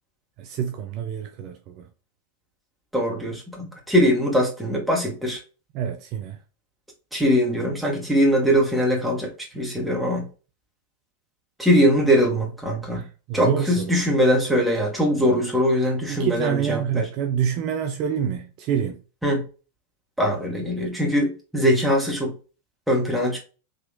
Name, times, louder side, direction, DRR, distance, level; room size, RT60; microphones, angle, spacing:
voice 1, 0.4-1.9 5.7-6.4 12.9-13.9 16.1-19.0, right 8 dB, 40° right, 0.5 m, -27 dB
voice 2, 2.9-5.4 7.1-10.3 11.6-13.0 13.3-17.1 19.2-19.4 20.2-22.3 22.9-23.4, equal, ahead, 1.5 m, -21 dB
3.9 x 2.9 x 2.3 m
figure-of-eight pair, 90°, 0 cm